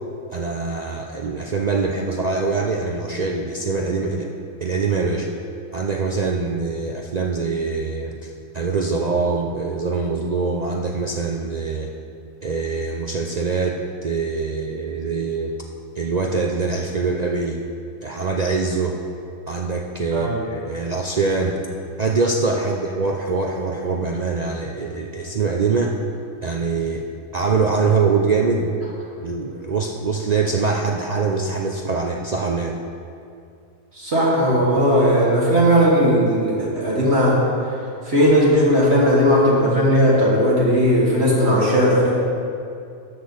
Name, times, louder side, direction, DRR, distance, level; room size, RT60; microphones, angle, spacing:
voice 1, 0.3-4.3 4.6-5.3 5.7-11.9 12.4-15.5 16.0-17.6 18.0-19.0 19.5-21.6 22.0-26.0 26.4-27.0 27.3-28.7 29.2-32.8, right 4 dB, 70° right, 1 dB, 0.4 m, -23 dB
voice 2, 33.9-37.4 38.1-42.1, equal, 50° right, -5 dB, 1.7 m, -17 dB
13.0 x 6.8 x 4.0 m, 2.4 s
omnidirectional pair, 1.5 m